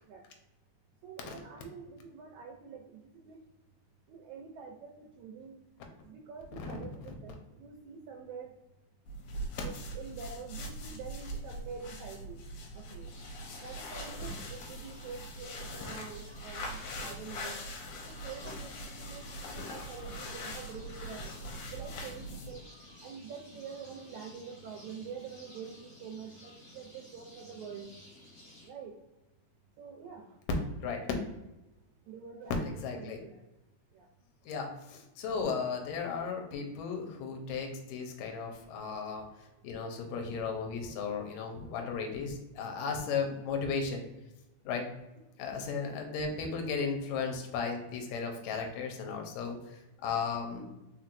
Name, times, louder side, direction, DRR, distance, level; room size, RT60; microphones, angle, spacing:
voice 1, 1.0-3.4 4.1-5.6 6.1-8.5 9.6-12.4 12.7-13.1 13.6-17.5 18.0-21.3 21.7-22.6 23.0-27.9 28.6-28.9 29.8-30.3 32.1-33.4 34.0-34.1, right 6 dB, 80° right, 1 dB, 1.8 m, -46 dB
sound 1, 9.1-22.6, equal, 90° left, 2.3 m, -42 dB
sound 2, 13.0-28.7, left 1 dB, 40° left, 1.4 m, -55 dB
voice 2, 32.6-33.2 34.5-39.3 39.6-44.1 44.7-44.9 45.4-49.6 50.0-50.8, left 5 dB, 75° left, 3 dB, 1.9 m, -35 dB
4.4 x 4.1 x 2.5 m, 0.97 s
omnidirectional pair, 3.6 m